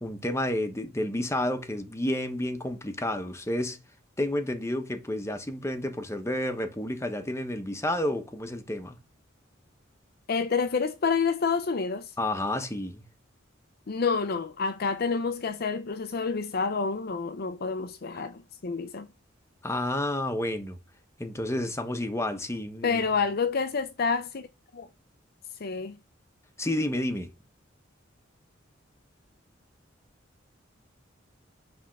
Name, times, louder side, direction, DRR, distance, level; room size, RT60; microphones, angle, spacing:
voice 1, 0.0-3.8 4.2-9.0 12.2-13.0 19.6-20.8 21.2-23.0 26.6-27.3, left 1 dB, 15° left, 1.0 m, -30 dB
voice 2, 10.3-12.1 13.9-19.1 22.8-24.5 24.7-24.9 25.6-26.0, left 5 dB, 55° left, 0.6 m, -28 dB
9.9 x 3.5 x 6.4 m
head